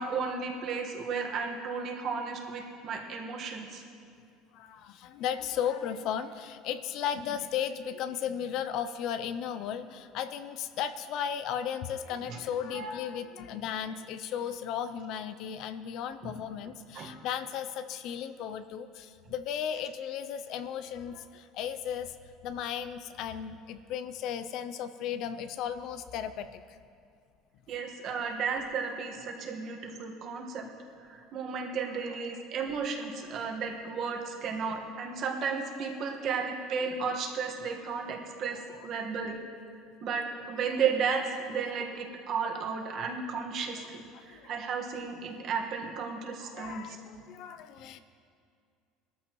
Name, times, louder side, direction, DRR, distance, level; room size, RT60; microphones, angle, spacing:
voice 1, 0.0-3.8 12.3-12.4 12.7-12.9 16.9-17.1 27.7-30.7 31.1-39.4 40.0-47.0, right 5 dB, 40° right, 1 dB, 1.5 m, -34 dB
voice 2, 4.5-22.2 22.4-26.8 32.5-32.6 33.3-33.5 44.1-44.5 46.4-48.0, left 8 dB, 50° left, 12 dB, 0.5 m, -35 dB
20.5 x 13.5 x 3.1 m, 2.3 s
cardioid pair, 170°, 0 cm